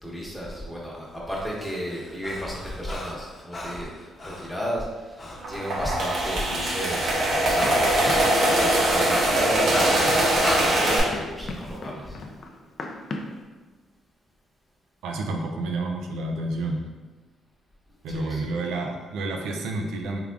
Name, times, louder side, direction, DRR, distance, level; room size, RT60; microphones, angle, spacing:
voice 1, 0.0-12.2 18.1-18.5, equal, 5° left, -5 dB, 1.0 m, -33 dB
Breathing, 1.3-4.5 5.2-5.4 5.7-10.7, left 1 dB, 35° left, 0.8 m, -36 dB
sound 1, 5.4-11.0, right 1 dB, 65° right, 0.9 m, -22 dB
Run, 7.6-13.4, left 3 dB, 55° left, 0.4 m, -38 dB
voice 2, 15.0-16.9 18.0-20.2, right 2 dB, 90° right, 2 dB, 0.4 m, -29 dB
3.6 x 3.3 x 2.3 m, 1.3 s
cardioid pair, 90°, 0 cm